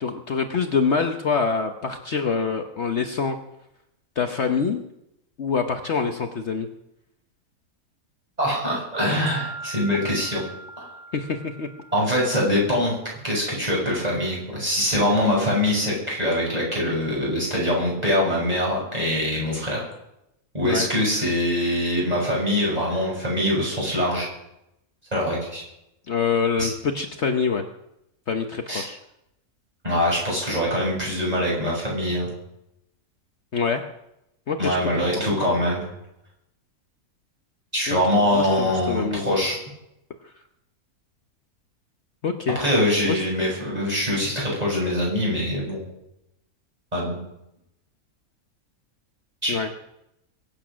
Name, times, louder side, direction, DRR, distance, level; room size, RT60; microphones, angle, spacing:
voice 1, 0.0-3.4 4.2-4.8 5.4-6.7 11.1-11.7 20.6-20.9 26.1-27.6 28.3-29.0 33.5-33.8 34.5-34.8 35.2-35.3 37.9-38.0 38.3-39.3 40.2-40.3 42.2-42.6 43.0-43.2 49.5-49.7, left 5 dB, 55° left, 5 dB, 1.2 m, -25 dB
voice 2, 8.4-10.4 10.8-11.0 11.9-12.9 13.2-19.9 20.5-24.3 25.1-25.6 26.6-26.7 28.7-28.8 29.8-32.3 34.6-35.9 37.7-39.6 42.6-45.8 46.9-47.2 49.4-49.5, left 1 dB, 25° right, -4 dB, 7.0 m, -23 dB
sound 1, 9.3-13.2, right 3 dB, 45° right, 3.1 m, -41 dB
22.5 x 8.7 x 6.3 m, 0.84 s
omnidirectional pair, 1.5 m